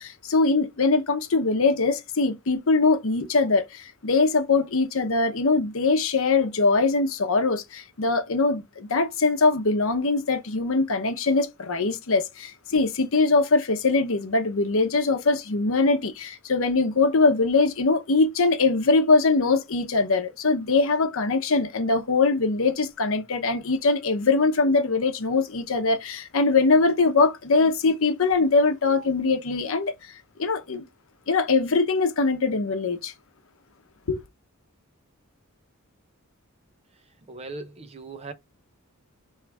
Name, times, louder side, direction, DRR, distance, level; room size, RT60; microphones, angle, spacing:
voice 1, 0.0-29.9 30.4-30.8 31.3-33.1 34.1-34.2, left 3 dB, 65° left, 0.8 m, -22 dB
voice 2, 37.3-38.3, right 3 dB, 30° right, 0.6 m, -38 dB
4.7 x 3.2 x 3.3 m
head